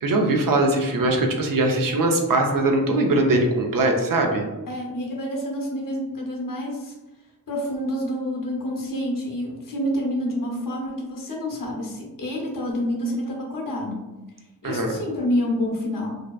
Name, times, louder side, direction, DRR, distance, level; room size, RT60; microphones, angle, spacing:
voice 1, 0.0-4.4 14.6-14.9, right 2 dB, 65° right, 2 dB, 0.5 m, -21 dB
voice 2, 4.7-6.9 7.5-14.1 14.6-16.2, equal, 60° left, -1 dB, 0.7 m, -28 dB
2.6 x 2.1 x 2.3 m, 1.1 s
wide cardioid pair, 70°, 37 cm